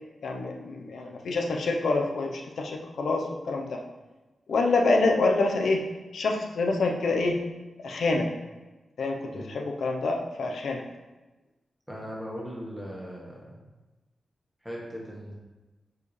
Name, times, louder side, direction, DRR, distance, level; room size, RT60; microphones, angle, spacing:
voice 1, 0.2-3.8 4.5-5.8 6.1-7.4 7.8-8.3 9.0-10.8, left 3 dB, 80° left, 2 dB, 0.9 m, -26 dB
voice 2, 11.9-13.6 14.6-15.3, equal, ahead, -4 dB, 1.6 m, -39 dB
7.8 x 4.8 x 3.3 m, 1.1 s
wide cardioid pair, 165°, 0 cm